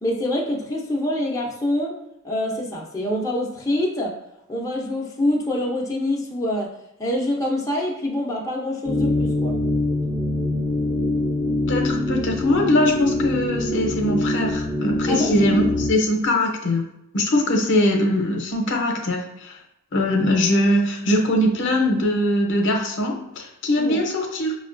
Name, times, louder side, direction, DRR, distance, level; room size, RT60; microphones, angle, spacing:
voice 1, 0.0-1.9 2.2-4.1 4.5-6.7 7.0-9.6 15.1-15.3 15.9-16.0 23.8-24.0, left 1 dB, 15° left, -3 dB, 0.5 m, -25 dB
sound 1, 8.8-15.9, left 1 dB, 30° right, 0.8 m, -24 dB
voice 2, 11.7-16.8 17.1-19.6 19.9-24.6, left 1 dB, 60° left, 2 dB, 0.7 m, -21 dB
5.6 x 2.2 x 2.5 m, 0.85 s
head